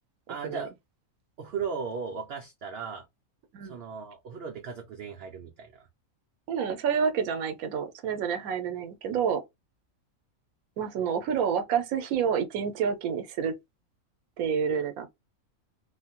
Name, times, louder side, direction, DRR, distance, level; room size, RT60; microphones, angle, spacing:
voice 1, 0.3-0.7 1.4-3.0 3.6-5.9, right 5 dB, 60° right, 0.7 m, -36 dB
voice 2, 6.5-9.4 10.8-13.5 14.4-15.1, right 7 dB, 80° right, 1.1 m, -28 dB
3.0 x 2.1 x 2.8 m
omnidirectional pair, 1.5 m